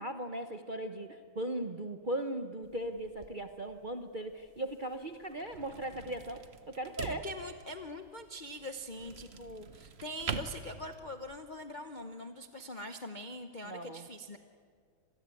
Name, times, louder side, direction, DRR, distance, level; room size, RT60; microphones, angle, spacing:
voice 1, 0.0-7.3 13.6-14.1, right 1 dB, 60° right, 7 dB, 0.5 m, -38 dB
sound 1, 2.6-11.4, right 5 dB, 40° right, 0.9 m, -45 dB
voice 2, 7.2-14.4, left 1 dB, 65° left, 7 dB, 0.4 m, -43 dB
26.5 x 20.0 x 8.4 m, 2.1 s
omnidirectional pair, 2.4 m